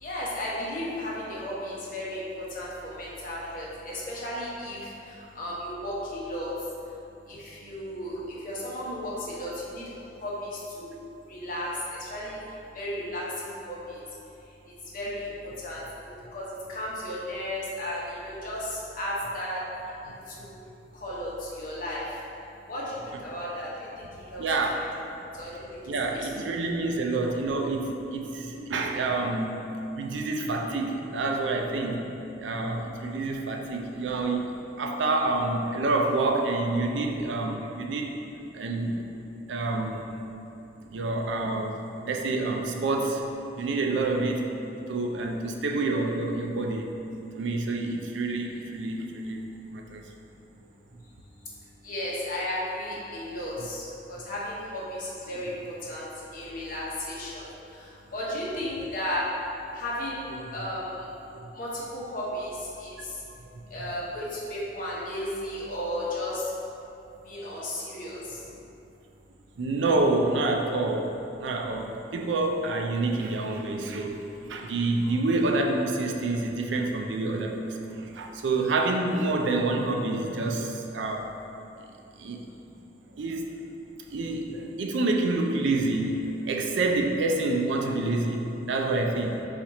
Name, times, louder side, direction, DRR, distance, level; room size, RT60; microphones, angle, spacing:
voice 1, 0.0-6.5 7.3-9.8 10.2-11.0 11.3-12.4 12.7-14.0 14.9-15.3 15.6-15.8 16.3-19.6 20.3-20.5 21.0-22.2 22.7-23.0 23.2-23.7 24.3-24.4 24.8-24.9 25.3-25.6 26.0-26.3 51.8-55.5 55.9-57.5 57.7-59.3 59.7-60.3 60.5-60.9 61.5-62.9 63.7-66.4 67.3-68.4, left 1 dB, 50° left, -6 dB, 0.9 m, -34 dB
voice 2, 24.4-24.8 25.9-34.5 34.8-38.1 38.5-39.0 39.5-40.2 40.9-43.3 43.6-44.4 44.9-46.9 47.3-49.5 49.7-50.0 60.4-60.5 61.3-61.5 69.6-81.3 82.2-82.4 83.2-83.5 84.1-89.5, right 2 dB, 85° right, 2 dB, 0.4 m, -28 dB
4.2 x 2.5 x 4.1 m, 2.8 s
head